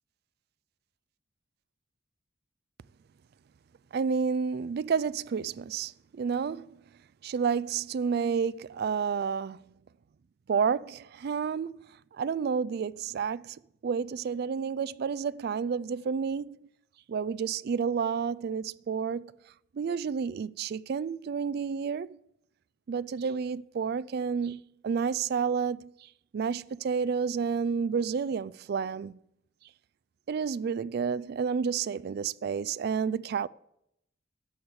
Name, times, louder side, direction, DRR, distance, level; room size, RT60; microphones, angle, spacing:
voice 1, 3.9-6.7 7.2-9.6 10.5-11.8 12.1-13.6 13.8-16.6 17.1-19.3 19.7-22.2 22.9-25.9 26.3-29.2 30.3-33.5, right 6 dB, 55° right, 0.3 m, -30 dB
13.0 x 4.7 x 8.4 m
head